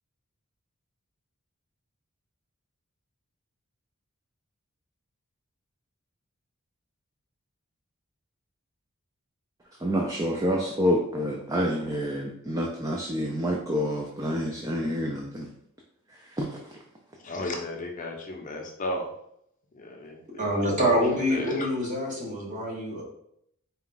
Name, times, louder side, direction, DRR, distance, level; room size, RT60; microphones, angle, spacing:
voice 1, 9.8-15.5 16.3-16.8, equal, 15° right, -1 dB, 0.3 m, -28 dB
voice 2, 17.2-19.1 19.7-21.0 21.3-21.7, left 1 dB, 35° left, 1 dB, 0.6 m, -34 dB
voice 3, 20.3-23.0, equal, 35° right, -3 dB, 1.1 m, -26 dB
4.0 x 2.3 x 3.8 m, 0.73 s
head